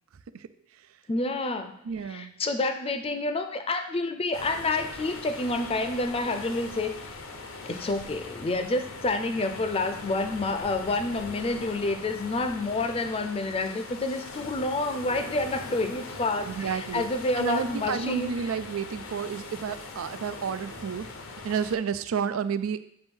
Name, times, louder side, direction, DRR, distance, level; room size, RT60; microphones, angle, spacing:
voice 1, 1.1-1.8 2.1-7.0 7.7-18.3, left 2 dB, 30° left, 8 dB, 0.5 m, -28 dB
voice 2, 1.8-2.4 16.4-17.0 17.4-21.1 21.4-22.8, right 6 dB, 90° right, 12 dB, 0.4 m, -31 dB
sound 1, 4.3-21.8, left 3 dB, 80° left, 0.8 m, -41 dB
7.0 x 2.7 x 5.3 m, 0.73 s
head